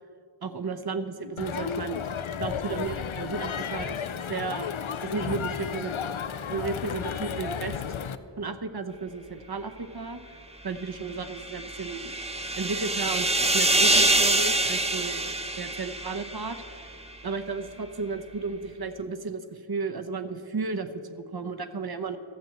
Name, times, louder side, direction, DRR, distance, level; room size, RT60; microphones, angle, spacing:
voice 1, 0.4-2.0 2.4-6.1 6.4-7.7 8.4-10.2 10.6-12.1 12.6-15.2 15.5-16.8 17.2-22.2, right 4 dB, 50° right, 8 dB, 0.9 m, -33 dB
Crowd, 1.4-8.1, left 7 dB, 85° left, 0.6 m, -33 dB
sound 1, 11.1-16.7, right 1 dB, 15° right, 0.9 m, -25 dB
13.5 x 7.6 x 7.8 m, 2.4 s
wide cardioid pair, 55°, 47 cm